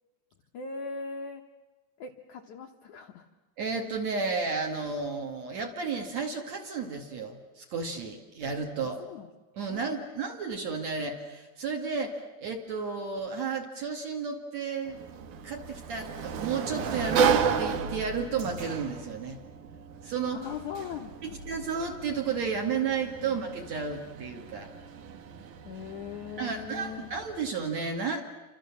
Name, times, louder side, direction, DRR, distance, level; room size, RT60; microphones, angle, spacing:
voice 1, 0.5-1.4 2.0-3.3 9.0-9.3 9.7-10.3 20.3-21.3 23.2-23.4 25.7-27.1, left 6 dB, 85° left, 4 dB, 1.7 m, -40 dB
voice 2, 3.6-9.0 9.6-15.0 15.4-19.4 20.0-20.4 21.5-24.7 26.4-28.2, right 5 dB, 45° right, 3 dB, 2.7 m, -32 dB
Sliding door, 14.9-27.5, right 7 dB, 65° right, 2.0 m, -33 dB
29.5 x 26.0 x 7.4 m, 1.2 s
omnidirectional pair, 5.3 m